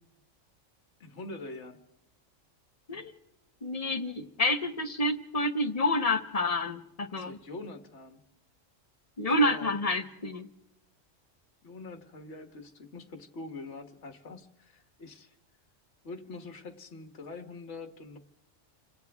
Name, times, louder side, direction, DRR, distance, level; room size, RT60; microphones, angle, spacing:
voice 1, 1.0-1.8 7.2-8.2 9.4-9.7 11.6-15.4 16.0-18.2, left 3 dB, 65° left, 7 dB, 1.8 m, -44 dB
voice 2, 3.6-7.4 9.2-10.5, left 1 dB, 30° left, 7 dB, 1.3 m, -28 dB
29.0 x 25.5 x 3.6 m, 0.83 s
omnidirectional pair, 1.3 m